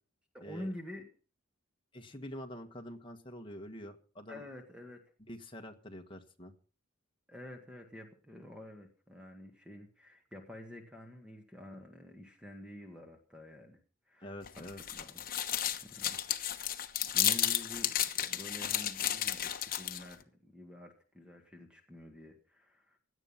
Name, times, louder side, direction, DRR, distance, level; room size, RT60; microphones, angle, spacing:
voice 1, 0.3-1.1 4.3-5.0 7.3-13.8 14.1-14.7 14.9-15.3 15.8-16.2 16.5-23.0, left 1 dB, 5° right, 3 dB, 1.8 m, -48 dB
voice 2, 1.9-4.4 5.3-6.5 14.2-14.8, equal, 25° left, 4 dB, 1.6 m, -46 dB
sound 1, 14.4-20.1, left 11 dB, 45° left, 1.1 m, -33 dB
17.0 x 10.5 x 5.7 m, 0.40 s
head